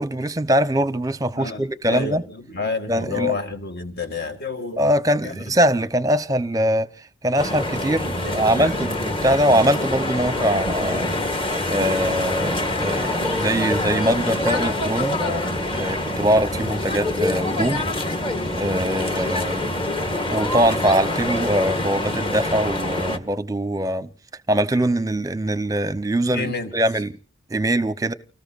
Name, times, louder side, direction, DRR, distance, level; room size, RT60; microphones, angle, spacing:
voice 1, 0.0-2.2 2.9-3.3 4.8-6.9 7.2-11.4 11.7-17.8 18.5-19.7 20.3-24.1 24.5-27.1 27.5-28.1, equal, 15° right, 0.8 m, -22 dB
voice 2, 1.3-4.8 5.2-5.5 8.2-8.9 13.6-14.0 14.3-14.5 26.2-26.7, left 4 dB, 50° left, 2.2 m, -30 dB
sound 1, 7.4-23.2, left 1 dB, 25° left, 1.8 m, -25 dB
29.5 x 19.0 x 2.5 m
head